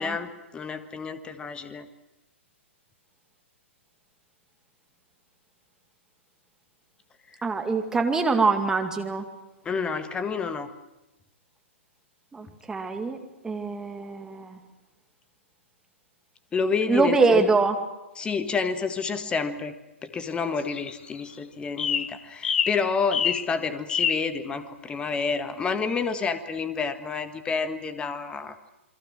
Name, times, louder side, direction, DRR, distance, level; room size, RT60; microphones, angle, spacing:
voice 1, 0.0-1.9 7.3-7.4 9.7-10.7 16.5-17.4 18.2-19.8 20.0-28.7, left 5 dB, 15° left, 10 dB, 1.7 m, -29 dB
voice 2, 7.4-9.3 12.3-13.2 13.4-14.6 16.9-17.8, right 4 dB, 10° right, 5 dB, 2.2 m, -24 dB
sound 1, 20.6-21.3 21.8-22.1 22.4-22.8 23.1-23.5 23.9-24.3, left 7 dB, 60° left, 1.2 m, -26 dB
28.5 x 22.5 x 6.3 m, 0.99 s
figure-of-eight pair, 115°, 7 cm